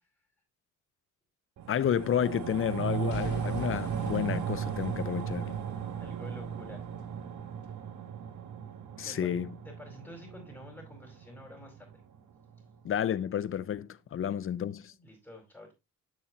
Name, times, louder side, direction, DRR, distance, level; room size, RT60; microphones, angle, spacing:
sound 1, 1.6-12.2 12.5-12.6, right 7 dB, 70° right, 1.3 m, -36 dB
voice 1, 1.7-5.6 9.0-9.5 12.8-14.9, left 9 dB, 45° left, 0.6 m, -31 dB
Boom / Shatter / Crushing, 3.1-7.1 7.6-7.7, left 6 dB, 70° left, 1.6 m, -47 dB
voice 2, 6.0-6.8 9.0-9.2 9.6-11.9 14.9-15.7, left 1 dB, 5° left, 4.4 m, -49 dB
8.8 x 6.9 x 2.9 m
cardioid pair, 90°, 30 cm